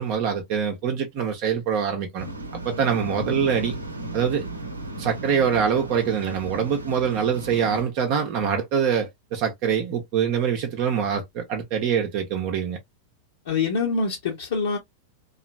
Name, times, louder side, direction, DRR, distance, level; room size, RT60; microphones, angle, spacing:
voice 1, 0.0-2.3 2.6-3.7 4.1-4.5 5.0-12.8, right 7 dB, 45° right, 0.8 m, -24 dB
Waves surf, 2.2-7.8, right 2 dB, 80° right, 0.7 m, -35 dB
voice 2, 13.4-14.8, left 4 dB, 60° left, 1.1 m, -25 dB
3.0 x 2.5 x 2.4 m
figure-of-eight pair, 90°, 0 cm